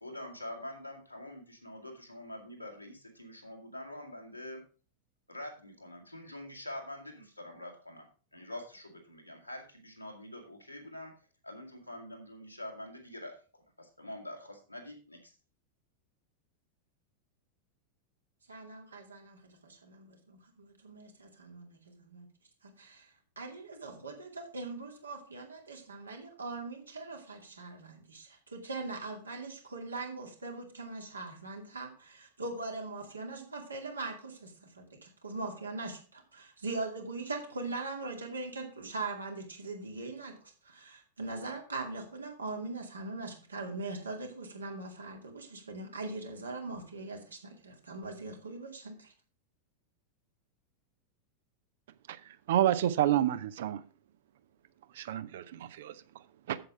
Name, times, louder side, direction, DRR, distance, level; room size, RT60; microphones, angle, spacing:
voice 1, 0.0-4.6 5.3-11.1 11.4-15.4, left 1 dB, 90° left, 2.2 m, -45 dB
voice 2, 18.5-22.3 22.6-23.1 23.4-49.1, right 3 dB, 75° right, 2.3 m, -41 dB
voice 3, 52.1-53.8 54.9-56.6, right 12 dB, 55° right, 0.6 m, -30 dB
7.9 x 7.6 x 4.9 m
figure-of-eight pair, 90°, 0 cm